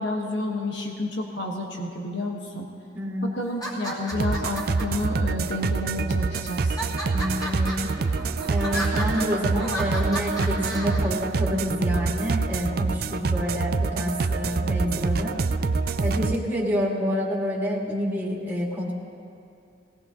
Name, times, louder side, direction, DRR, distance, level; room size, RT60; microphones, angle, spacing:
voice 1, 0.0-2.7 3.4-6.7, left 2 dB, 85° left, 0 dB, 1.4 m, -30 dB
voice 2, 2.9-3.3 7.1-7.9 8.5-15.4 16.0-18.9, equal, 10° right, -5 dB, 2.1 m, -28 dB
sound 1, 3.5-4.8 5.6-6.1 6.6-11.0, equal, 20° left, 2.7 m, -33 dB
sound 2, 4.1-16.4, right 4 dB, 55° right, 0.4 m, -26 dB
18.5 x 18.0 x 3.0 m, 2.6 s
head